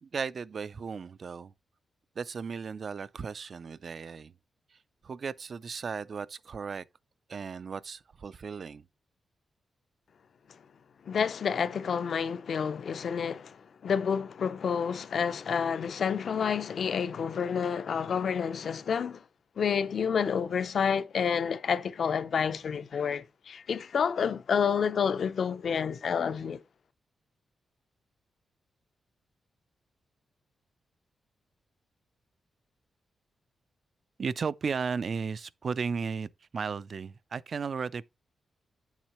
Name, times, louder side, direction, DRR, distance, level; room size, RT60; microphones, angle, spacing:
voice 1, 0.0-1.5 2.2-4.3 4.7-6.8 7.3-8.9 34.2-38.1, right 5 dB, 45° right, 0.3 m, -35 dB
voice 2, 11.1-19.2 19.6-26.6, left 7 dB, 55° left, 0.6 m, -29 dB
8.9 x 7.3 x 3.0 m
wide cardioid pair, 155°, 0 cm